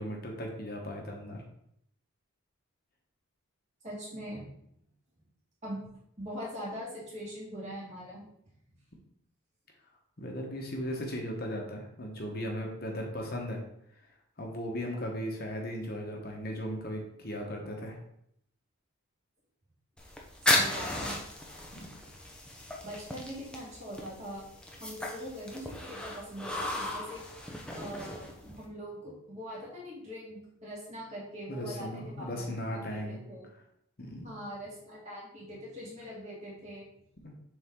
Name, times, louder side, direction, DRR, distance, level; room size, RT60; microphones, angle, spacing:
voice 1, 0.0-1.4 10.2-13.6 14.4-18.0 21.7-21.9 31.5-33.2 34.0-34.3 37.2-37.3, equal, 45° left, 1 dB, 1.1 m, -37 dB
voice 2, 3.8-4.5 5.6-5.8 6.2-8.3 20.4-21.2 22.8-24.4 24.8-27.2 27.7-33.5 34.2-36.9, equal, 30° right, -6 dB, 2.4 m, -42 dB
sound 1, 20.0-28.7, left 1 dB, 5° left, 0.7 m, -35 dB
6.9 x 3.9 x 3.7 m, 0.73 s
head